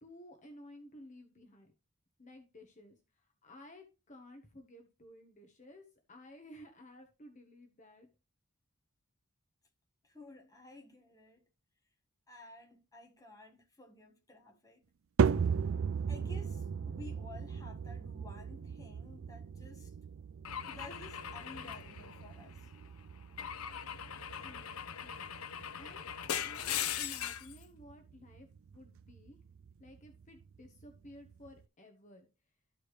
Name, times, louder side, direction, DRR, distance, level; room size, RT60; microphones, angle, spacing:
voice 1, 0.0-1.7 2.2-8.1 24.3-25.3 25.7-26.2 26.4-28.5 28.7-29.4 29.8-32.3, left 1 dB, 35° left, 1.1 m, -55 dB
voice 2, 10.0-11.5 12.3-14.8 15.2-15.3 16.1-20.0 20.7-22.7, left 2 dB, 15° left, 1.4 m, -53 dB
sound 1, 15.2-31.6, right 6 dB, 65° right, 0.4 m, -38 dB
Car / Engine / Glass, 20.5-22.7 23.4-27.6, left 9 dB, 80° left, 0.7 m, -40 dB
13.0 x 4.9 x 3.1 m
head